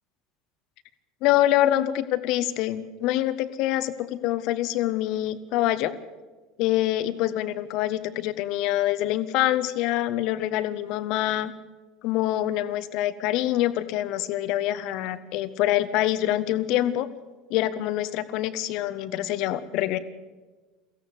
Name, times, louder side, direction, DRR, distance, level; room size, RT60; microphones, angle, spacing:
voice 1, 1.2-5.9 6.6-11.5 12.0-17.1 17.5-20.0, left 14 dB, 55° left, 13 dB, 1.2 m, -25 dB
23.0 x 16.0 x 8.0 m, 1.3 s
figure-of-eight pair, 70°, 0 cm